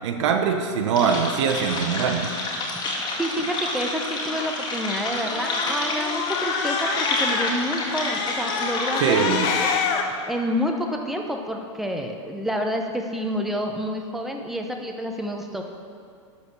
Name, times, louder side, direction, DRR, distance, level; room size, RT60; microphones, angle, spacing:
voice 1, 0.0-2.3 9.0-9.5, right 6 dB, 70° right, 5 dB, 0.9 m, -22 dB
sound 1, 0.9-9.5, left 2 dB, 30° left, 1.9 m, -29 dB
voice 2, 3.2-9.7 10.2-15.6, equal, ahead, 2 dB, 0.8 m, -28 dB
Cat, 5.2-7.5 7.9-10.0, left 6 dB, 45° left, 1.0 m, -27 dB
12.0 x 4.2 x 6.8 m, 2.3 s
hypercardioid pair, 130°, 16 cm